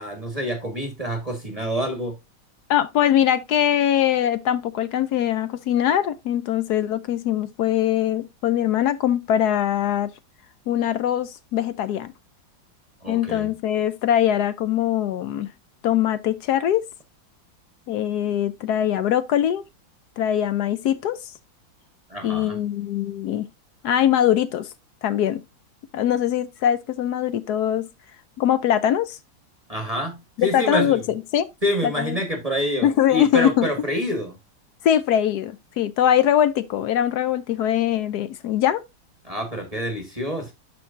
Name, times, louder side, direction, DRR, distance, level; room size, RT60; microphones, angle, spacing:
voice 1, 0.0-2.1 13.0-13.5 22.1-22.6 29.7-31.0 31.6-34.4 39.2-40.5, equal, 20° right, 1.4 m, -27 dB
voice 2, 2.7-10.1 10.7-12.1 13.1-15.5 15.8-16.8 17.9-19.6 20.2-21.2 22.2-23.5 23.8-24.7 25.0-25.4 25.9-27.9 28.4-29.2 30.4-31.0 31.3-31.5 31.8-32.2 32.8-33.7 34.8-38.8, left 10 dB, 70° left, 1.0 m, -22 dB
12.0 x 4.6 x 2.5 m
omnidirectional pair, 2.0 m